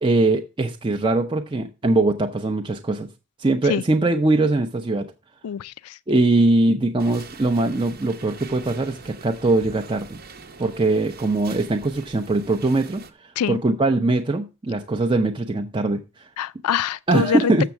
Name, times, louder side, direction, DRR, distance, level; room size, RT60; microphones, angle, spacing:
voice 1, 0.0-3.1 3.4-5.1 6.1-10.2 10.6-16.3 17.1-17.7, right 2 dB, 20° right, 0.5 m, -21 dB
voice 2, 5.4-6.0 13.4-13.6 16.4-17.7, left 8 dB, 80° left, 0.4 m, -25 dB
sound 1, 7.0-13.1, right 4 dB, 45° right, 0.9 m, -43 dB
7.0 x 6.7 x 5.8 m
head